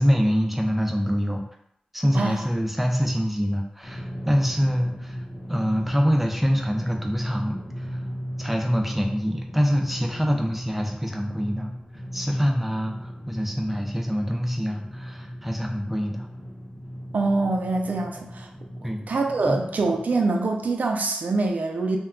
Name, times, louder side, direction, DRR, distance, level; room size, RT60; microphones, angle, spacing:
voice 1, 0.0-1.4 1.9-5.2 5.5-8.0 8.4-11.7 12.1-16.3 18.8-19.0 19.5-19.6, equal, 5° right, 1 dB, 0.4 m, -25 dB
Drum, 3.8-20.0, equal, 20° left, 1.0 m, -37 dB
voice 2, 17.1-18.5 18.8-22.0, right 3 dB, 75° right, 3 dB, 0.3 m, -25 dB
2.2 x 2.1 x 3.5 m, 0.74 s
wide cardioid pair, 75°, 3 cm